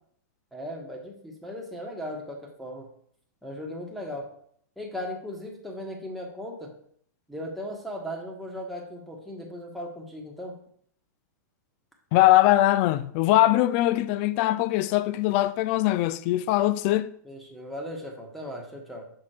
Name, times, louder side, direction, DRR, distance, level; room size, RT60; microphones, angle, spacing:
voice 1, 0.5-2.9 3.4-4.3 4.8-6.7 7.3-10.6 17.2-19.1, equal, ahead, 1.5 m, -37 dB
voice 2, 12.1-17.1, left 15 dB, 45° left, 0.4 m, -21 dB
6.5 x 4.1 x 4.4 m
hypercardioid pair, 130°, 10 cm